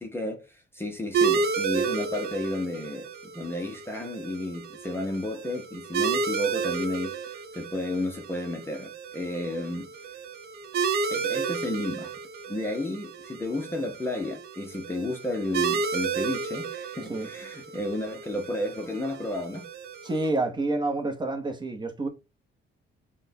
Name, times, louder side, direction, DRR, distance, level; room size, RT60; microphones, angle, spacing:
voice 1, 0.0-9.9 11.1-12.1 12.5-19.7, left 2 dB, 10° left, 0.7 m, -32 dB
sound 1, 1.1-20.3, right 5 dB, 50° right, 0.8 m, -32 dB
voice 2, 20.0-22.1, right 2 dB, 20° right, 0.8 m, -28 dB
5.9 x 2.2 x 2.7 m
cardioid pair, 145°, 20 cm